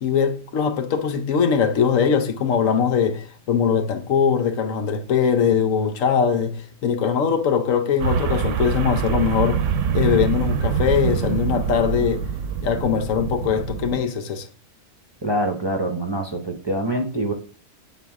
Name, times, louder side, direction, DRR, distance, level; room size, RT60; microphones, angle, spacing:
voice 1, 0.0-9.6 9.9-12.2 12.6-14.5, left 7 dB, 85° left, 1.2 m, -21 dB
sound 1, 8.0-14.0, right 8 dB, 75° right, 0.9 m, -25 dB
voice 2, 15.2-17.3, right 1 dB, 25° right, 0.6 m, -25 dB
7.9 x 4.1 x 3.5 m
omnidirectional pair, 1.3 m